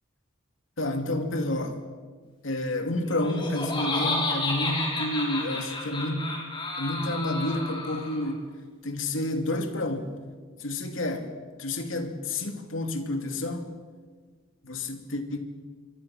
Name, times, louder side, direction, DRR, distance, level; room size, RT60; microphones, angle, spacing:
voice 1, 0.8-1.8 2.4-6.3 6.8-8.5 8.8-10.2 10.6-11.3 11.6-13.6 14.6-15.4, left 1 dB, 70° left, 2.7 m, -29 dB
Laughter, 3.1-8.3, left 2 dB, 25° left, 5.5 m, -31 dB
26.0 x 23.5 x 6.1 m
head